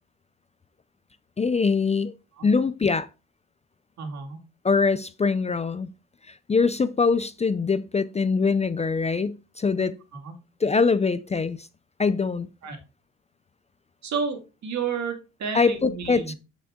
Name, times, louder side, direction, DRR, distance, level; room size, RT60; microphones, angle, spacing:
voice 1, 1.4-2.1 2.4-3.1 4.6-5.9 6.3-9.9 10.6-11.7 12.0-12.5 15.5-16.4, left 4 dB, 20° left, 0.4 m, -23 dB
voice 2, 4.0-4.4 10.1-10.3 12.6-12.8 14.0-16.4, right 5 dB, 65° right, 2.3 m, -31 dB
7.8 x 5.2 x 3.6 m
cardioid pair, 90°, 30 cm